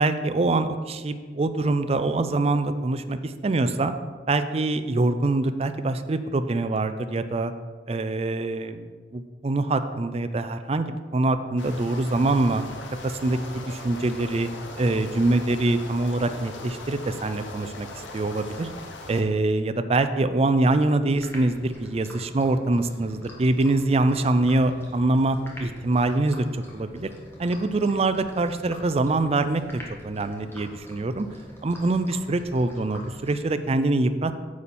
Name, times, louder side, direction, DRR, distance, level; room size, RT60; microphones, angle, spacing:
voice 1, 0.0-3.9 4.3-7.5 7.9-8.9 9.1-12.6 13.0-14.5 14.8-17.9 18.1-18.7 19.1-27.1 27.4-29.6 30.0-31.3 31.6-34.4, right 2 dB, 35° right, 9 dB, 0.4 m, -24 dB
sound 1, 11.6-19.2, left 2 dB, 85° left, 1.1 m, -39 dB
sound 2, 21.1-33.8, equal, 15° left, 1.4 m, -45 dB
9.5 x 7.0 x 4.2 m, 1.5 s
head